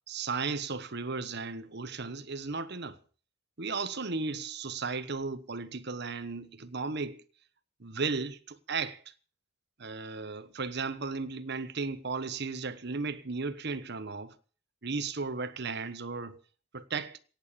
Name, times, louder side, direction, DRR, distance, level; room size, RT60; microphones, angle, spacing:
voice 1, 0.1-3.0 3.6-7.2 7.8-9.0 9.8-14.3 14.8-16.4 16.7-17.2, right 4 dB, 55° right, 1.2 m, -35 dB
18.0 x 7.9 x 9.0 m
head